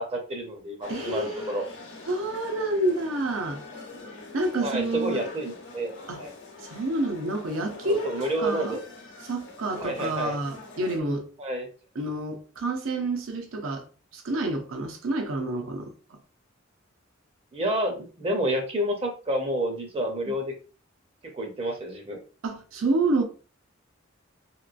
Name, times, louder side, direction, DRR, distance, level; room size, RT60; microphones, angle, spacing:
voice 1, 0.0-1.6 4.6-5.9 6.2-6.3 7.8-8.8 9.8-10.4 11.4-11.7 17.5-20.5 21.2-22.2, right 1 dB, 30° right, 0.5 m, -29 dB
sound 1, 0.8-11.0, left 3 dB, 65° left, 0.8 m, -43 dB
voice 2, 0.9-1.5 2.1-3.6 4.3-5.3 6.1-6.2 6.6-8.8 9.2-11.3 11.9-13.9 14.1-16.2 20.3-20.4 22.4-23.2, right 2 dB, 85° right, 0.7 m, -28 dB
3.0 x 2.9 x 2.4 m
head